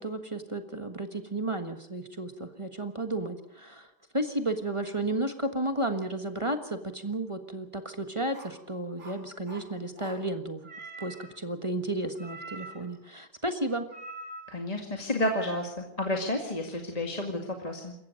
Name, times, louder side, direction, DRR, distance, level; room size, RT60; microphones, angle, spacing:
voice 1, 0.0-3.9 4.1-10.7 11.0-13.9, right 1 dB, 20° right, 7 dB, 1.4 m, -33 dB
sound 1, 8.3-8.5 9.0-9.7 9.9-10.2 10.6-11.4 12.2-13.0 13.9-14.7 15.2-15.5, right 2 dB, 40° right, 4.1 m, -44 dB
voice 2, 14.5-17.9, left 1 dB, 20° left, 2 dB, 2.0 m, -31 dB
27.5 x 15.0 x 6.5 m, 0.79 s
omnidirectional pair, 1.9 m